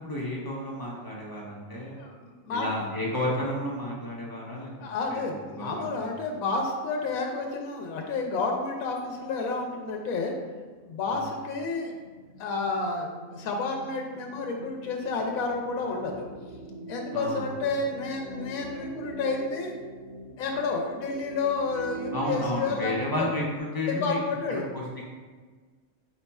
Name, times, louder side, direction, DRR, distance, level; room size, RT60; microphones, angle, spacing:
voice 1, 0.0-2.0 2.5-4.7 5.1-6.1 11.0-11.3 17.1-17.5 22.1-24.2 24.5-25.0, left 1 dB, 35° left, -4 dB, 0.3 m, -32 dB
voice 2, 2.0-2.9 4.8-10.3 10.8-11.9 12.4-16.3 16.9-19.7 20.4-23.3 23.8-24.7, left 3 dB, 80° left, 1 dB, 1.0 m, -30 dB
sound 1, 8.2-23.6, right 2 dB, 55° right, 1.5 m, -44 dB
4.8 x 2.3 x 4.1 m, 1.5 s
omnidirectional pair, 1.4 m